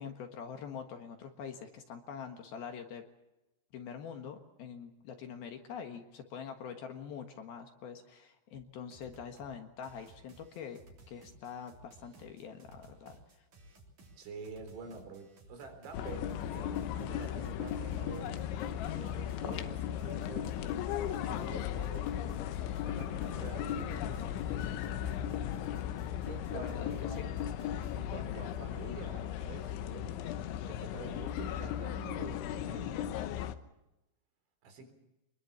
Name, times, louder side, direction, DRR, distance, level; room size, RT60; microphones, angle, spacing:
voice 1, 0.0-3.1 3.7-10.8 11.1-13.4 26.5-27.3, left 7 dB, 65° left, 5 dB, 3.0 m, -45 dB
sound 1, 8.5-8.6 8.9-9.5 9.8-28.0, right 2 dB, 45° right, 4.6 m, -58 dB
voice 2, 14.2-18.4 18.8-22.1 22.8-25.3 26.2-26.8 27.1-27.2 27.9-30.2 30.7-33.3 34.6-34.9, right 4 dB, 75° right, 6 dB, 6.1 m, -47 dB
sound 2, 15.9-33.6, left 10 dB, 80° left, 3.4 m, -36 dB
25.0 x 21.5 x 7.2 m, 0.96 s
omnidirectional pair, 5.4 m